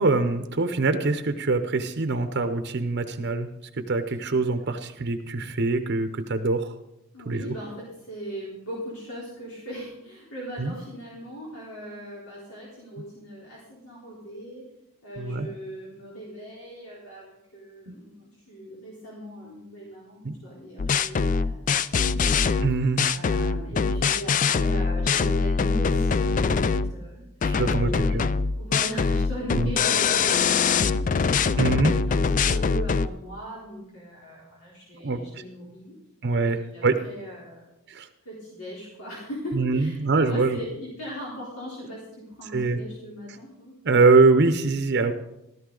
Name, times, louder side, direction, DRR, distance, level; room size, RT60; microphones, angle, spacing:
voice 1, 0.0-3.5 3.9-6.7 7.3-7.5 10.6-10.7 15.2-15.5 17.9-18.0 20.2-20.3 22.6-23.0 27.4-28.3 29.6-29.7 31.6-31.9 35.0-35.4 36.2-37.0 37.9-38.1 39.5-40.6 42.5-42.8 43.8-45.1, right 3 dB, 55° right, 9 dB, 0.7 m, -23 dB
voice 2, 7.1-14.7 15.0-22.3 23.0-27.3 27.7-28.2 28.6-31.2 31.5-36.0 36.7-37.7 38.3-43.8, equal, 90° left, -5 dB, 3.8 m, -39 dB
sound 1, 20.8-26.9 27.4-33.1, left 5 dB, 35° left, 0.3 m, -23 dB
14.5 x 13.5 x 3.9 m, 0.88 s
head